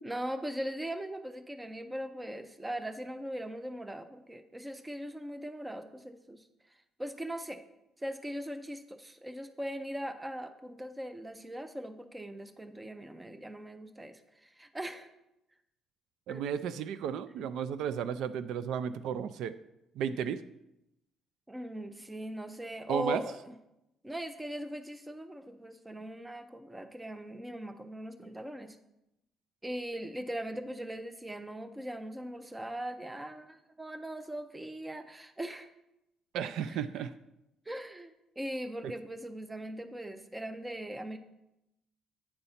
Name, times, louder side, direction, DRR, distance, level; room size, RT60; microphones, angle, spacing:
voice 1, 0.0-6.5 7.0-7.6 8.0-15.1 16.3-16.4 21.5-23.5 24.0-28.8 29.6-35.7 36.7-37.0 37.7-41.2, right 1 dB, 10° right, 9 dB, 0.5 m, -40 dB
voice 2, 16.3-19.6 20.0-20.4 22.9-23.2 36.3-37.1 38.8-38.9, right 8 dB, 70° right, 14 dB, 0.3 m, -34 dB
8.8 x 4.1 x 5.6 m, 0.88 s
cardioid pair, 150°, 0 cm